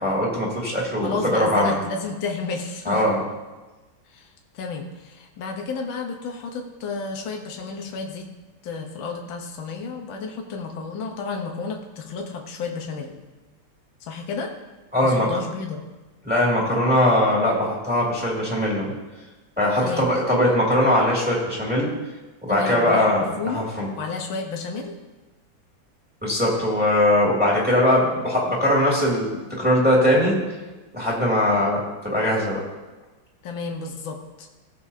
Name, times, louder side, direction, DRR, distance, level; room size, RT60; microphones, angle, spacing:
voice 1, 0.0-1.7 2.9-3.2 14.9-15.3 16.2-18.9 19.6-21.9 22.4-23.9 26.2-30.4 30.9-32.6, left 1 dB, 5° right, -5 dB, 2.2 m, -21 dB
voice 2, 1.0-3.0 4.1-8.3 8.6-13.2 14.0-14.5 15.0-15.8 19.8-20.6 22.5-23.7 24.0-24.9 33.4-34.5, left 4 dB, 75° left, 2 dB, 1.8 m, -32 dB
19.0 x 6.9 x 2.8 m, 1.2 s
omnidirectional pair, 2.2 m